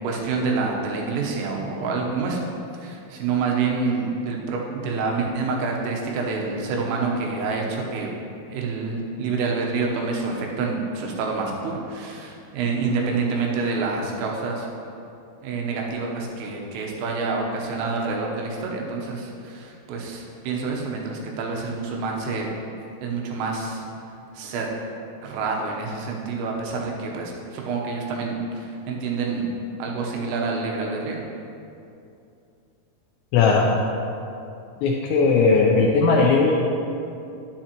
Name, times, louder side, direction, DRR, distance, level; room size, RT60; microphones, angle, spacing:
voice 1, 0.0-2.4 2.8-8.1 8.5-14.7 15.4-22.5 23.0-23.9 24.4-24.7 25.2-29.5 29.8-31.2, right 4 dB, 90° right, -1 dB, 3.6 m, -27 dB
voice 2, 33.3-33.7 34.8-36.5, left 4 dB, 85° left, -2 dB, 2.6 m, -18 dB
10.0 x 7.9 x 2.9 m, 2.7 s
omnidirectional pair, 5.7 m